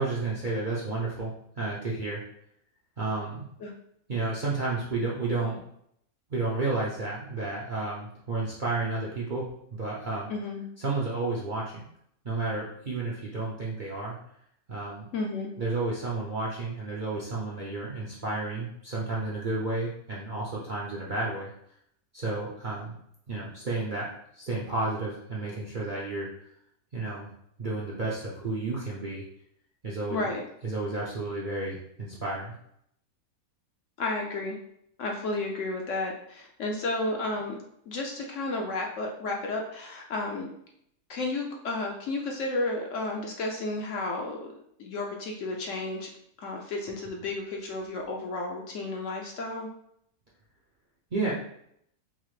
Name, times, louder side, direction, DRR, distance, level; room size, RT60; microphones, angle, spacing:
voice 1, 0.0-2.2 3.0-3.4 4.1-5.6 6.3-10.3 10.8-11.8 12.2-14.2 14.7-15.1 15.6-21.5 22.1-22.9 23.3-24.1 24.3-26.3 26.9-27.3 27.6-29.2 29.8-30.2 30.6-32.5 51.1-51.3, right 3 dB, 50° right, -6 dB, 0.6 m, -31 dB
voice 2, 10.3-10.6 15.1-15.5 30.1-30.4 34.0-34.6 35.0-37.6 37.9-40.5 41.1-44.5 44.8-46.1 46.4-49.7, left 2 dB, 65° left, 0 dB, 0.9 m, -32 dB
5.6 x 2.0 x 3.1 m, 0.71 s
omnidirectional pair, 1.6 m